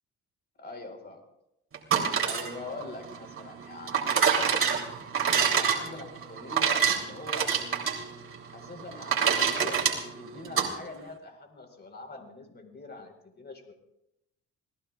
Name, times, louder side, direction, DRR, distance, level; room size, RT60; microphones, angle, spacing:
voice 1, 0.6-1.2 2.2-4.5 5.6-7.5 8.5-13.7, left 2 dB, 35° left, 4 dB, 4.5 m, -43 dB
sound 1, 1.7-10.7, right 7 dB, 45° right, 3.3 m, -27 dB
26.5 x 18.5 x 2.4 m, 0.84 s
cardioid pair, 90°, 30 cm